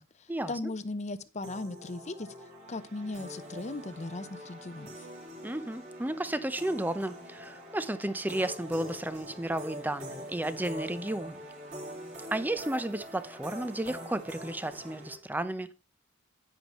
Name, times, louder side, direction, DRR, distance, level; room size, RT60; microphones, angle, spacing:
voice 1, 0.0-2.3 2.7-5.1, left 2 dB, 35° left, 0.7 m, -38 dB
sound 1, 1.4-15.1, equal, 35° right, 4.0 m, -44 dB
voice 2, 5.4-11.5 12.3-15.7, right 1 dB, 10° right, 0.6 m, -33 dB
10.5 x 8.8 x 3.0 m
head